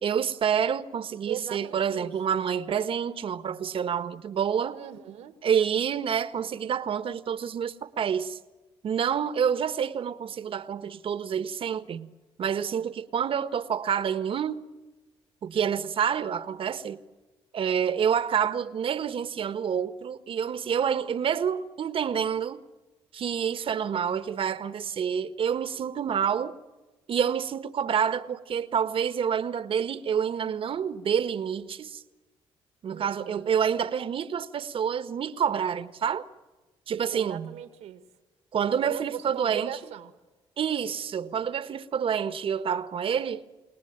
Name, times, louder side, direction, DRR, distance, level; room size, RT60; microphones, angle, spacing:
voice 1, 0.0-4.8 5.4-8.4 8.8-12.1 12.4-14.6 15.4-17.0 17.5-22.6 23.1-26.5 27.1-32.0 32.8-36.2 36.9-37.6 38.5-39.7 40.6-43.4, right 8 dB, 60° right, 1.4 m, -28 dB
voice 2, 1.3-2.1 4.7-5.3 32.9-33.4 37.1-38.0 38.8-40.1, right 10 dB, 80° right, 1.7 m, -39 dB
29.5 x 19.0 x 9.0 m
supercardioid pair, 70°, 11 cm